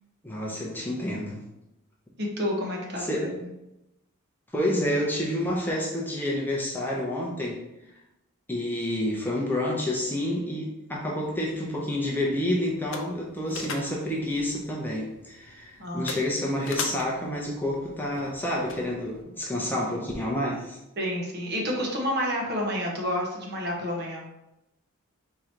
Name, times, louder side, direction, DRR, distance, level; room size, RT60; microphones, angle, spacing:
voice 1, 0.2-1.4 3.0-3.3 4.5-7.6 8.5-20.8, left 1 dB, 10° left, -3 dB, 0.6 m, -29 dB
voice 2, 2.2-3.3 15.8-16.1 21.0-24.3, equal, 50° right, 0 dB, 0.9 m, -29 dB
sound 1, 11.2-19.2, left 4 dB, 60° left, 0.6 m, -41 dB
3.8 x 2.9 x 4.4 m, 0.91 s
head